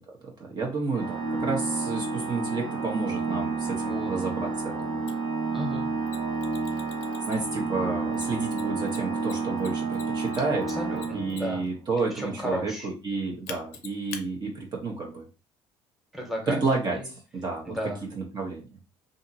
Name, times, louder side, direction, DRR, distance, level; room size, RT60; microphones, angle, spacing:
voice 1, 0.5-5.1 7.3-10.6 11.1-15.3 16.5-17.7 18.1-18.7, right 3 dB, 40° right, 0 dB, 0.9 m, -30 dB
Organ, 0.9-11.8, right 4 dB, 70° right, 0.9 m, -30 dB
voice 2, 3.7-4.1 5.5-5.9 10.7-11.6 12.0-12.9 16.1-17.1 17.7-18.0, equal, ahead, 1 dB, 1.2 m, -34 dB
Mechanisms, 5.1-5.2 6.1-7.6 8.1-11.7 13.5-14.2, left 9 dB, 85° left, 0.5 m, -43 dB
2.7 x 2.5 x 2.7 m, 0.32 s
supercardioid pair, 75°, 11 cm